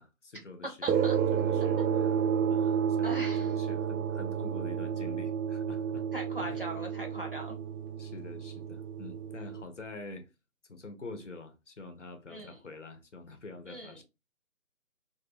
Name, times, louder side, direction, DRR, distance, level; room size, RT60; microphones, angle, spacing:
voice 1, 0.0-2.2 2.5-6.1 6.4-6.7 8.0-10.3 10.7-14.0, left 2 dB, 55° left, 0.6 m, -46 dB
voice 2, 0.8-1.2 3.0-3.5 6.1-7.6 12.3-12.6 13.7-13.9, right 1 dB, 40° right, 0.6 m, -39 dB
sound 1, 0.9-9.6, right 8 dB, 85° right, 0.5 m, -31 dB
2.2 x 2.2 x 3.1 m
figure-of-eight pair, 180°, 45 cm